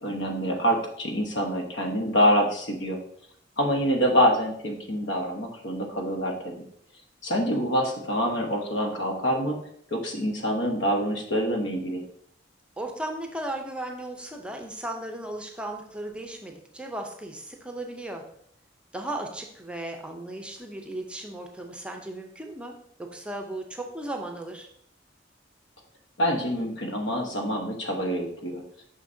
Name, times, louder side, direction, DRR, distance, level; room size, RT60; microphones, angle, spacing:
voice 1, 0.0-3.0 3.6-6.6 7.2-9.6 9.9-12.0 26.2-28.6, equal, 80° left, 2 dB, 1.1 m, -26 dB
voice 2, 12.8-18.3 18.9-24.7, right 1 dB, 5° right, 3 dB, 0.6 m, -36 dB
6.5 x 5.7 x 2.7 m, 0.68 s
head